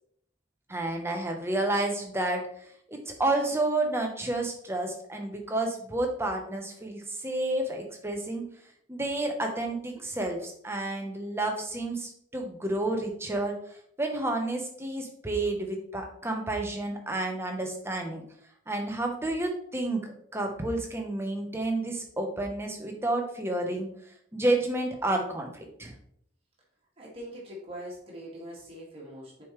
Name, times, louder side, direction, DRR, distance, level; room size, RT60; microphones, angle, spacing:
voice 1, 0.7-8.5 8.9-18.2 18.7-23.9 24.3-25.9, right 2 dB, 10° right, 2 dB, 0.9 m, -30 dB
voice 2, 27.0-29.4, equal, 30° right, -4 dB, 2.1 m, -42 dB
7.0 x 4.8 x 3.2 m, 0.67 s
head